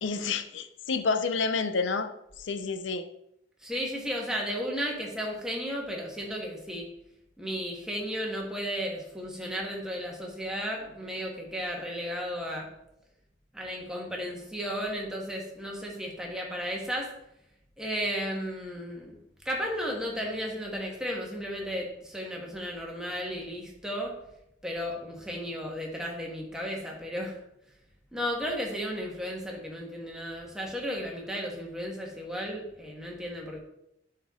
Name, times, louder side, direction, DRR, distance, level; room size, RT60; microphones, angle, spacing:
voice 1, 0.0-2.1 2.4-3.0, left 4 dB, 85° left, 10 dB, 0.6 m, -29 dB
voice 2, 3.6-6.9 7.4-12.7 13.5-17.1 17.8-19.1 19.4-24.2 24.6-27.4 28.1-33.6, equal, 5° right, -1 dB, 1.4 m, -34 dB
10.5 x 4.5 x 3.7 m, 0.79 s
head